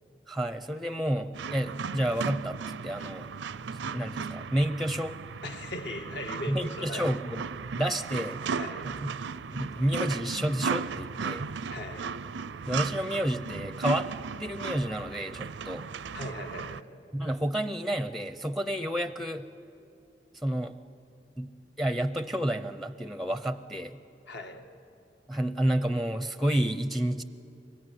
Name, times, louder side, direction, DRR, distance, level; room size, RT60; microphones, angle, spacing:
voice 1, 0.3-3.3 3.8-5.2 6.5-7.4 7.8-8.4 8.8-9.2 9.5-11.5 12.7-14.1 14.4-15.9 17.1-19.5 20.4-20.7 21.4-24.0 25.3-27.2, right 1 dB, ahead, 12 dB, 0.5 m, -30 dB
sound 1, 1.3-16.8, right 5 dB, 85° right, 0.5 m, -36 dB
voice 2, 5.4-7.1 8.5-8.9 11.7-12.1 16.1-16.9 24.3-24.7, left 1 dB, 70° left, 4 dB, 2.0 m, -39 dB
24.0 x 19.5 x 9.7 m, 2.8 s
head